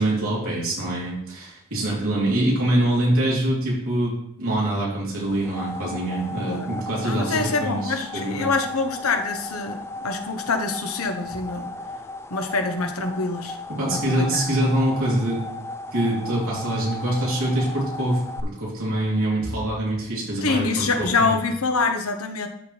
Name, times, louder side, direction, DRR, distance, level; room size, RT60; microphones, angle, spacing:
voice 1, 0.0-8.5 13.8-15.4 15.9-21.3, right 1 dB, 70° right, -6 dB, 3.2 m, -24 dB
sound 1, 5.2-18.4, left 2 dB, 10° left, 0.3 m, -36 dB
voice 2, 7.0-11.7 12.3-13.6 13.9-14.6 20.4-22.5, left 4 dB, 80° left, 6 dB, 1.0 m, -25 dB
13.0 x 4.4 x 3.3 m, 0.71 s
head